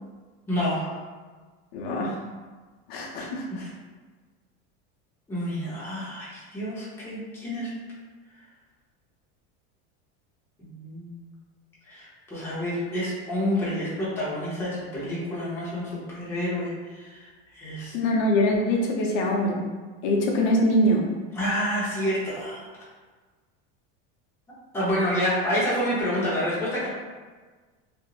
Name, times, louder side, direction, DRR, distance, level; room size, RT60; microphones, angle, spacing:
voice 1, 0.5-1.0 3.6-3.7 5.3-7.7 10.6-11.2 11.8-17.9 21.3-22.7 24.7-26.9, equal, 10° left, -9 dB, 0.6 m, -28 dB
voice 2, 1.7-2.2 2.9-3.6 17.9-19.6 20.0-21.1, left 1 dB, 75° left, -1 dB, 0.6 m, -23 dB
2.4 x 2.0 x 3.0 m, 1.4 s
supercardioid pair, 160°, 31 cm